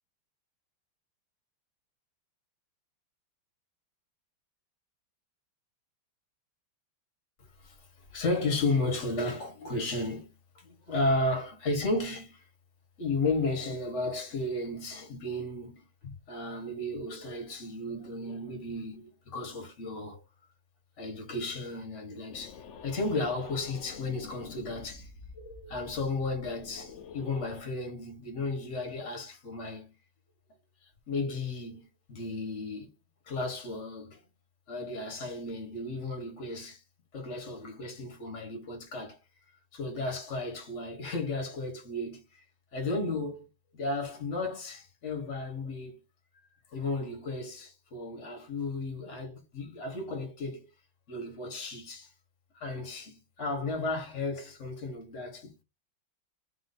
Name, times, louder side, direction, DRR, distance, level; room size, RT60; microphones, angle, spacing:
voice 1, 8.1-12.4 13.0-20.2 21.0-25.1 25.3-29.9 31.1-32.9 33.3-34.2 34.7-36.8 37.1-39.2 39.7-42.2 42.7-43.4 43.7-45.9 46.7-50.6 51.1-52.1 52.5-55.6, left 2 dB, 40° left, 1.6 m, -34 dB
sound 1, 22.3-27.6, left 5 dB, 85° left, 0.6 m, -48 dB
3.7 x 3.0 x 4.1 m
omnidirectional pair, 2.2 m